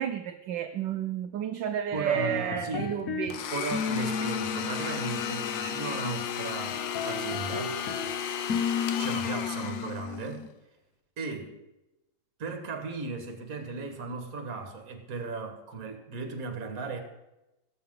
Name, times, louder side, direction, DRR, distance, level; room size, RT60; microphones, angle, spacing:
voice 1, 0.0-3.5, right 9 dB, 70° right, 7 dB, 1.2 m, -31 dB
sound 1, 1.9-3.3 3.7-6.2 6.7-8.1 8.5-10.5, left 6 dB, 50° left, 1.3 m, -34 dB
voice 2, 1.9-3.0 3.5-7.8 9.0-10.5 11.2-11.5 12.4-17.0, right 3 dB, 45° right, 5 dB, 1.9 m, -36 dB
Domestic sounds home sounds, 3.3-10.4, left 8 dB, 70° left, 1.5 m, -34 dB
18.5 x 7.7 x 3.7 m, 0.97 s
omnidirectional pair, 2.2 m